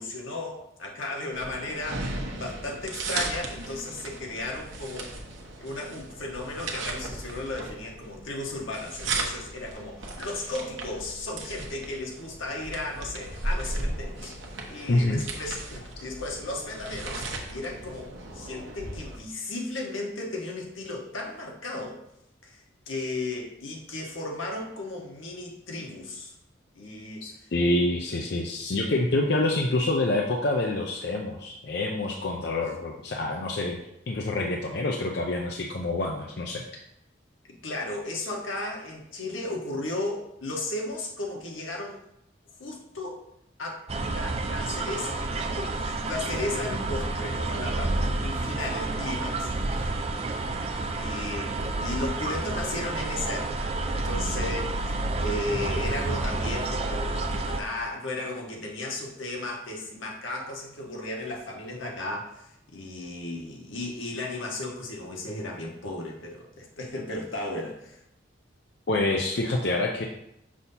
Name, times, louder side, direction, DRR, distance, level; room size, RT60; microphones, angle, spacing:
voice 1, 0.0-2.1 2.4-5.1 5.6-14.3 14.7-22.0 22.4-26.3 26.7-27.5 37.6-42.0 42.6-43.2 43.6-49.9 50.9-68.0, left 2 dB, 90° left, -1 dB, 1.3 m, -35 dB
sound 1, 1.3-19.2, right 2 dB, 80° right, 1.0 m, -36 dB
voice 2, 14.9-15.2 27.2-33.8 34.1-36.6 68.9-70.1, left 2 dB, 55° left, 1 dB, 0.5 m, -27 dB
sound 2, 43.9-57.6, right 2 dB, 30° right, 0.4 m, -29 dB
6.2 x 2.8 x 5.5 m, 0.80 s
head